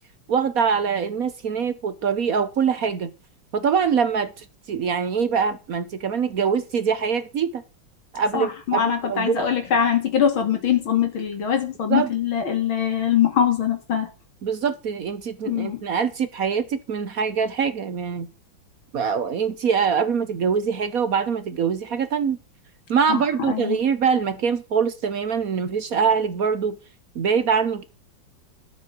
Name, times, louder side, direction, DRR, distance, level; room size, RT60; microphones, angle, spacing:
voice 1, 0.3-3.1 3.5-7.6 8.1-9.5 11.9-12.1 14.4-18.3 18.9-22.4 22.9-26.8 27.1-27.8, right 6 dB, 55° right, 1.2 m, -23 dB
voice 2, 8.3-14.1 15.5-15.8 23.1-23.2 23.5-23.8, left 8 dB, 85° left, 3.3 m, -22 dB
12.5 x 6.7 x 6.1 m
omnidirectional pair, 2.1 m